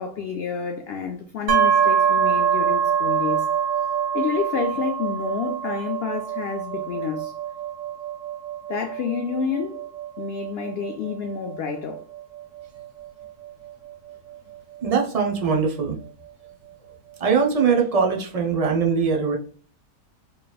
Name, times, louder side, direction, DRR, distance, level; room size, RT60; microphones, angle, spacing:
voice 1, 0.0-3.5 4.1-7.3 8.7-9.8 10.2-12.0, left 6 dB, 75° left, 0.5 m, -29 dB
sound 1, 1.5-15.2, right 8 dB, 85° right, 1.5 m, -25 dB
voice 2, 14.8-16.0 17.2-19.4, right 5 dB, 50° right, 0.4 m, -21 dB
4.7 x 3.1 x 2.3 m
omnidirectional pair, 1.6 m